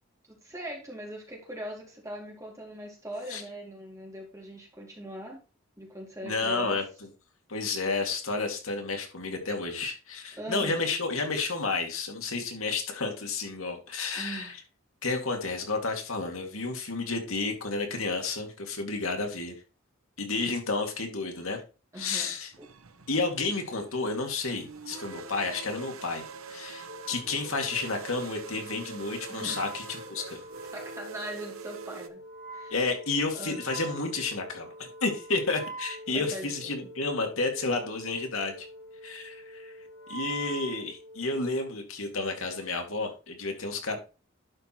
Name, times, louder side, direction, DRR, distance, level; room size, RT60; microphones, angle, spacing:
voice 1, 0.3-5.4 5.8-6.8 10.4-10.8 14.2-14.5 21.9-22.7 29.3-29.6 30.7-32.2 32.5-32.7 33.3-33.6 36.1-36.9, right 1 dB, 15° right, 0 dB, 2.6 m, -41 dB
voice 2, 6.2-6.8 7.5-14.5 15.0-19.5 20.2-21.6 22.0-22.5 23.1-26.2 26.5-29.8 30.1-30.4 32.7-38.7 39.0-39.7 40.1-44.0, left 3 dB, 85° left, 3 dB, 2.3 m, -31 dB
sound 1, 22.5-32.1, right 5 dB, 85° right, 0.9 m, -44 dB
Wind instrument woodwind instrument, 26.9-41.6, right 2 dB, 40° right, 2.9 m, -45 dB
11.5 x 4.5 x 4.3 m, 0.32 s
head